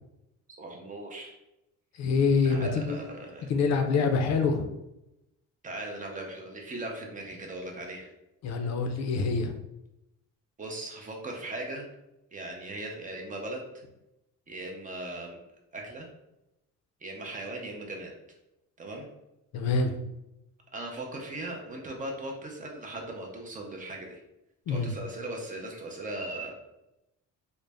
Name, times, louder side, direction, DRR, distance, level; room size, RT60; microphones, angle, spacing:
voice 1, 0.6-1.4 2.4-3.5 5.6-8.1 10.6-11.9 12.3-13.6 14.5-15.4 15.7-16.1 17.0-18.1 18.8-19.1 20.7-24.2 24.7-26.5, right 2 dB, 25° right, 1 dB, 0.5 m, -38 dB
voice 2, 2.0-3.0 3.5-4.7 8.4-9.6 19.5-20.0 24.7-24.9, left 4 dB, 55° left, 6 dB, 0.5 m, -25 dB
3.8 x 2.1 x 3.3 m, 0.90 s
cardioid pair, 170°, 32 cm